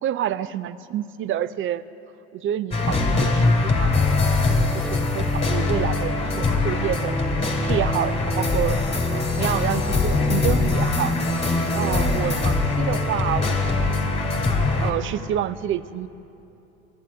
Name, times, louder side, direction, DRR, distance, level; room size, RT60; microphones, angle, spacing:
voice 1, 0.0-1.8 2.3-3.9 4.2-8.8 9.1-11.2 11.7-14.1 14.8-16.1, right 11 dB, 40° right, 16 dB, 0.6 m, -28 dB
sound 1, 2.7-14.9, left 3 dB, 20° left, 2.3 m, -22 dB
13.5 x 7.4 x 9.4 m, 2.9 s
hypercardioid pair, 75°, 32 cm